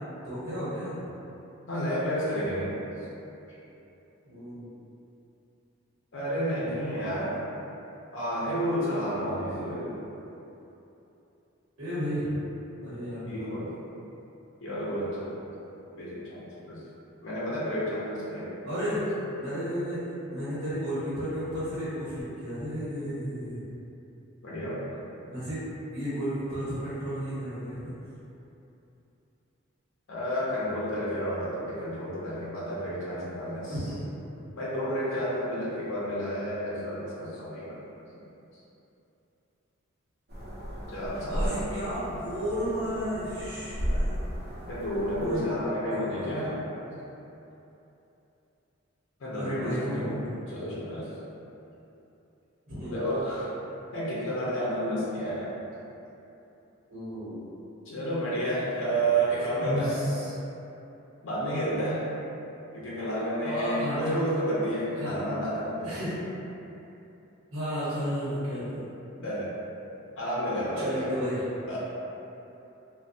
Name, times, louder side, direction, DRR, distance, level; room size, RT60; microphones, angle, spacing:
voice 1, 0.2-1.0 4.2-4.7 9.2-10.1 11.8-12.4 12.8-13.4 18.6-19.1 19.4-20.0 20.3-23.6 25.3-25.6 25.9-27.8 33.7-34.0 41.2-44.2 45.1-45.6 45.9-46.5 49.4-50.2 52.7-53.0 56.9-57.4 59.6-60.4 63.4-64.1 65.0-65.2 65.8-66.2 67.5-68.8 70.7-71.4, equal, 85° right, -12 dB, 0.9 m, -33 dB
voice 2, 1.7-2.7 3.5-3.6 6.1-7.4 8.1-9.9 13.3-13.7 14.6-15.3 16.0-16.8 17.2-18.5 24.4-24.9 30.1-33.7 34.5-37.8 40.9-41.5 44.7-46.6 49.2-51.1 52.9-53.5 53.9-55.5 57.9-59.9 61.2-62.0 62.7-66.0 69.2-69.5 70.2-71.0 71.7-71.8, equal, 60° left, -8 dB, 0.6 m, -31 dB
sound 1, 40.3-45.4, equal, 50° right, 0.7 m, -34 dB
3.1 x 2.1 x 2.6 m, 3.0 s
head